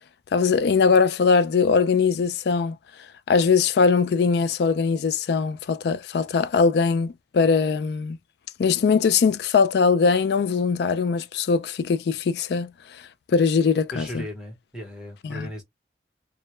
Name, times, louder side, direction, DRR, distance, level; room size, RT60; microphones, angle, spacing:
voice 1, 0.3-2.8 3.3-8.2 8.6-12.7 13.3-14.2 15.2-15.5, left 5 dB, 65° left, 0.3 m, -21 dB
voice 2, 13.9-15.6, equal, 5° right, 0.8 m, -36 dB
2.2 x 2.1 x 2.9 m
head